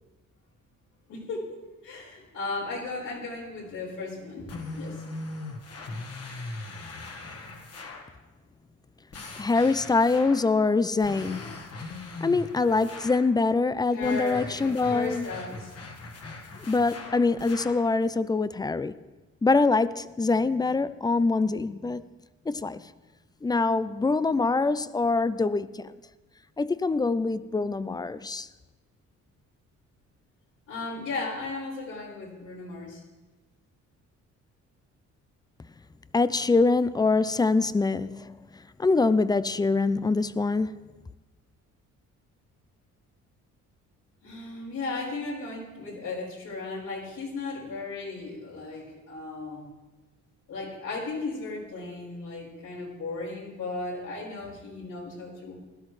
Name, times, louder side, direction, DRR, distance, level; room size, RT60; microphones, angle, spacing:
voice 1, 1.1-1.5 1.8-5.0 13.9-15.7 30.7-33.0 44.2-49.7 50.5-55.5, left 3 dB, 80° left, 5.0 m, -36 dB
sound 1, 4.5-8.1 9.1-10.5 11.0-13.3 14.0-17.9, left 2 dB, 50° left, 1.7 m, -40 dB
voice 2, 9.4-11.6 12.2-15.3 16.7-19.0 19.4-22.0 22.5-22.8 23.4-25.9 26.6-28.5 36.1-38.4 38.8-40.8, left 3 dB, 15° left, 0.4 m, -24 dB
16.5 x 12.5 x 3.2 m
cardioid pair, 90°, 30 cm